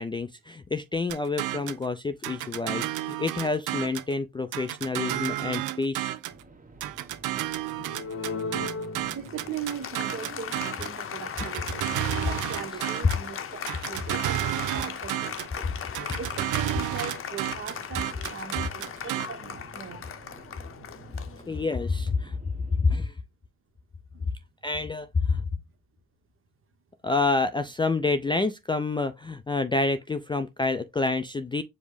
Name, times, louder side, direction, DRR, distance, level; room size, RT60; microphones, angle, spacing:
voice 1, 0.0-6.1 15.8-16.2 21.5-22.4 22.7-23.2 24.6-25.4 27.0-31.6, left 3 dB, 15° left, 0.3 m, -28 dB
sound 1, 1.1-1.8 2.2-4.1 4.5-6.4 6.8-11.0 11.4-13.3 13.7-15.6 15.9-19.3, right 14 dB, 90° right, 0.5 m, -31 dB
sound 2, 6.3-23.0, right 3 dB, 25° right, 1.1 m, -51 dB
Applause, 7.9-21.9, left 7 dB, 45° left, 0.6 m, -37 dB
voice 2, 9.1-11.9 12.3-15.8 16.2-20.0 24.1-24.3, right 7 dB, 45° right, 0.9 m, -39 dB
5.2 x 2.0 x 4.7 m
cardioid pair, 90°, 30 cm